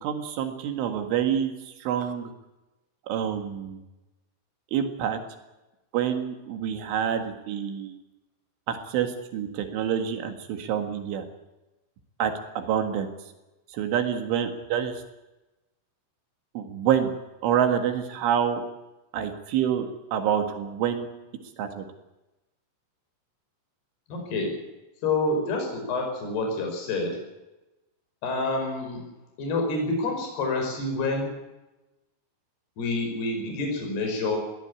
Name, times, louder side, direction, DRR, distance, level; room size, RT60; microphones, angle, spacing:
voice 1, 0.0-2.3 3.1-3.8 4.7-5.2 5.9-8.0 8.7-11.2 12.2-13.1 13.7-15.0 16.6-17.1 17.4-18.6 19.1-21.1 21.6-21.8, right 9 dB, 75° right, 6 dB, 4.2 m, -27 dB
voice 2, 24.1-24.5 25.0-27.2 28.2-29.0 29.4-31.3 32.8-34.4, left 2 dB, 55° left, 2 dB, 7.2 m, -28 dB
21.5 x 16.5 x 8.6 m, 1.0 s
omnidirectional pair, 5.8 m